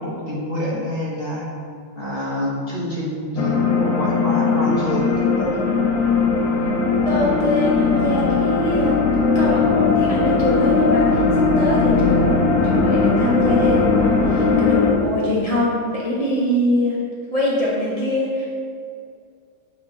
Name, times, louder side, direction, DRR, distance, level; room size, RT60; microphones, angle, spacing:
voice 1, 0.0-1.5 1.9-5.5, equal, 35° left, -6 dB, 1.1 m, -26 dB
sound 1, 3.4-14.9, left 4 dB, 80° left, 0.7 m, -18 dB
voice 2, 6.6-9.0 9.3-17.0 17.3-18.5, left 1 dB, 75° right, -7 dB, 0.3 m, -23 dB
7.8 x 2.8 x 4.3 m, 2.3 s
omnidirectional pair, 2.1 m